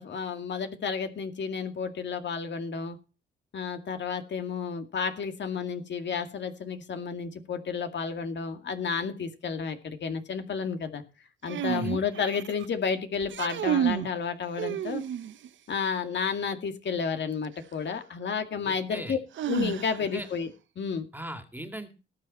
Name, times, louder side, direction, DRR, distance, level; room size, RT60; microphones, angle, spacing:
voice 1, 0.0-3.0 3.5-11.0 11.4-15.0 15.7-19.2 19.5-20.5 20.8-21.1, left 6 dB, 70° left, 7 dB, 2.2 m, -31 dB
sound 1, 11.4-12.7 13.2-14.1 14.6-15.5 17.4-17.5 19.4-20.2, right 10 dB, 80° right, 0.8 m, -30 dB
voice 2, 18.6-19.2 20.1-20.3 21.1-21.9, right 1 dB, 10° right, 7 dB, 2.4 m, -38 dB
19.0 x 7.4 x 4.3 m, 0.33 s
cardioid pair, 90°, 19 cm